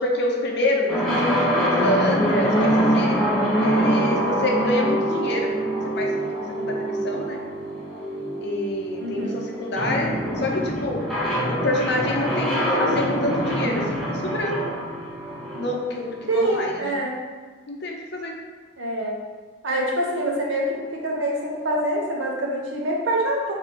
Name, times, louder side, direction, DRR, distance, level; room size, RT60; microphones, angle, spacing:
voice 1, 0.0-3.2 3.6-7.4 8.4-10.1 10.4-14.6 15.5-16.9 17.7-18.3, left 1 dB, 55° left, 0 dB, 0.7 m, -27 dB
sound 1, 0.9-16.7, equal, ahead, 0.9 m, -24 dB
voice 2, 9.0-9.4 16.3-17.2 18.8-19.2 19.6-23.5, right 1 dB, 65° right, -2 dB, 0.9 m, -25 dB
5.1 x 2.7 x 3.8 m, 1.4 s
head